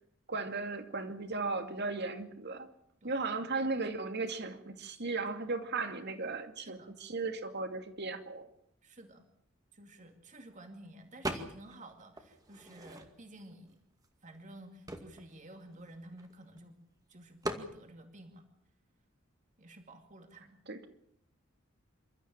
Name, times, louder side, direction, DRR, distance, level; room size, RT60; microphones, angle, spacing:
voice 1, 0.3-2.7 3.0-8.5 20.7-20.9, right 3 dB, 55° right, 8 dB, 2.4 m, -36 dB
voice 2, 6.6-6.9 8.8-9.2 9.7-13.8 14.2-16.7 17.1-18.4 19.6-20.6, right 1 dB, 40° right, 6 dB, 2.4 m, -52 dB
sound 1, 11.2-11.8 12.2-13.4 14.0-14.1 14.4-16.6 17.4-17.7, right 1 dB, 20° right, 2.2 m, -40 dB
28.0 x 13.5 x 8.9 m, 0.70 s
head